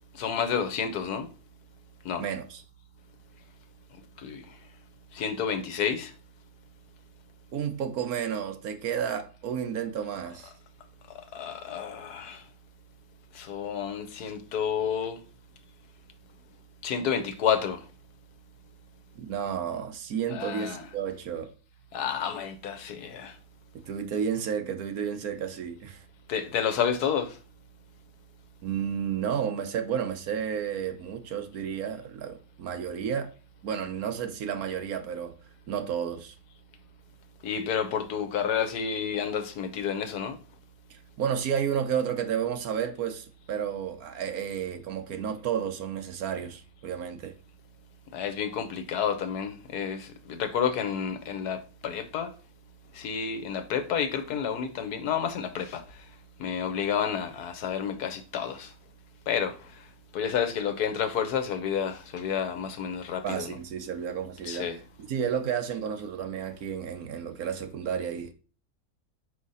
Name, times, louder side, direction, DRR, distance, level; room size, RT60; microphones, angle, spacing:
voice 1, 0.1-1.3 2.0-2.2 4.2-4.5 5.1-6.1 11.1-12.4 13.3-15.2 16.8-17.8 20.3-20.8 21.9-23.3 26.3-27.4 37.4-40.4 48.1-52.3 52.9-55.8 56.4-58.7 59.3-59.6 60.1-63.6 64.5-64.8, left 7 dB, 90° left, 1.4 m, -30 dB
voice 2, 2.2-2.6 7.5-10.5 19.2-21.5 23.8-26.0 28.6-33.3 33.6-35.3 35.7-36.3 40.9-47.3 63.2-64.7 65.1-68.3, right 8 dB, 75° right, 1.4 m, -31 dB
5.2 x 5.0 x 3.9 m
omnidirectional pair, 1.6 m